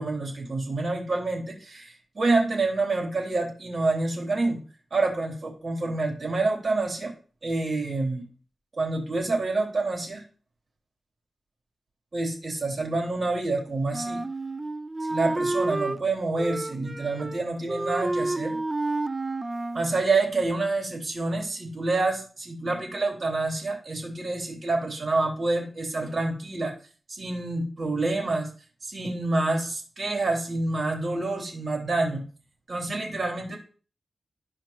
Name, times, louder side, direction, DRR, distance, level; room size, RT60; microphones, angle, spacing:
voice 1, 0.0-4.6 4.9-7.1 7.4-8.2 8.7-10.2 12.1-14.2 15.1-18.6 19.7-26.7 27.1-28.5 28.8-32.2 32.7-33.6, right 3 dB, 50° right, -1 dB, 3.4 m, -27 dB
Wind instrument woodwind instrument, 13.9-16.0 16.4-17.4 17.7-19.9, right 2 dB, 20° right, 0.4 m, -30 dB
14.0 x 5.0 x 3.1 m, 0.40 s
wide cardioid pair, 95°, 0 cm